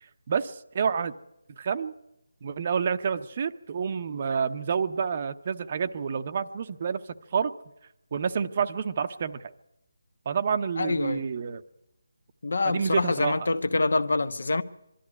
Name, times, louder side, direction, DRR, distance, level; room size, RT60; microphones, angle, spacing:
voice 1, 0.3-1.1 1.6-1.9 2.4-7.0 7.3-7.5 8.1-9.4 10.3-11.6 12.6-13.5, right 6 dB, 35° right, 0.8 m, -28 dB
voice 2, 10.8-11.3 12.4-14.6, left 3 dB, 70° left, 1.2 m, -26 dB
22.5 x 13.0 x 9.7 m
figure-of-eight pair, 170°, 0 cm